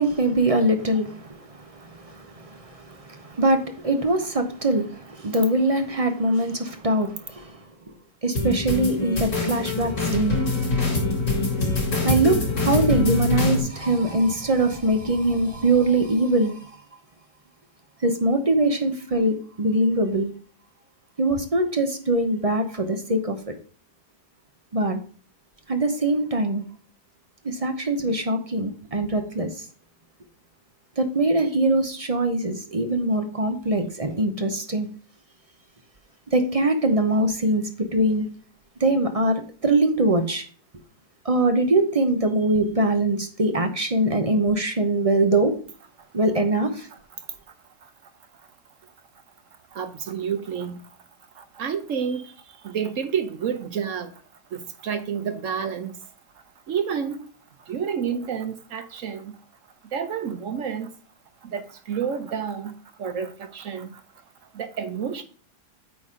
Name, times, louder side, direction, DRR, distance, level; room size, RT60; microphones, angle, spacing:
voice 1, 0.0-1.5 1.8-7.6 8.2-10.4 12.0-16.6 18.0-20.3 21.2-23.5 24.7-25.0 25.7-26.6 27.4-29.5 31.0-34.9 36.3-38.3 38.8-40.4 41.2-45.6 46.1-46.9, right 1 dB, 30° right, 0.7 m, -22 dB
sound 1, 8.4-13.6, left 3 dB, 60° left, 3.9 m, -24 dB
sound 2, 10.1-16.1, left 1 dB, 40° left, 2.4 m, -41 dB
voice 2, 49.7-50.8 51.3-54.1 54.5-56.0 56.7-57.3 57.7-59.4 59.8-60.9 61.4-64.0 64.5-65.2, right 7 dB, 60° right, 1.0 m, -30 dB
8.9 x 4.2 x 4.9 m
omnidirectional pair, 1.7 m